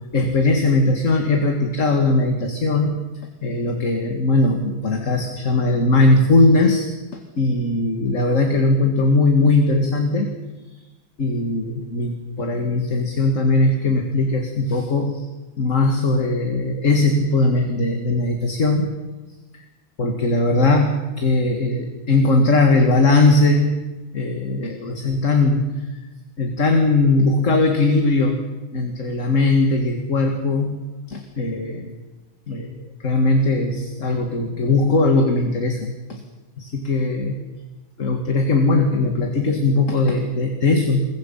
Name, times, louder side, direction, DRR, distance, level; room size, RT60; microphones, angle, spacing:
voice 1, 0.1-3.0 3.4-6.9 7.4-10.3 11.2-15.2 15.6-18.9 20.0-23.8 24.1-25.7 26.4-28.4 28.7-30.8 31.1-31.9 32.5-32.8 33.0-36.2 36.6-37.4 38.0-41.1, left 2 dB, 40° left, 3 dB, 2.3 m, -19 dB
27.5 x 23.0 x 5.7 m, 1.2 s
omnidirectional pair, 2.2 m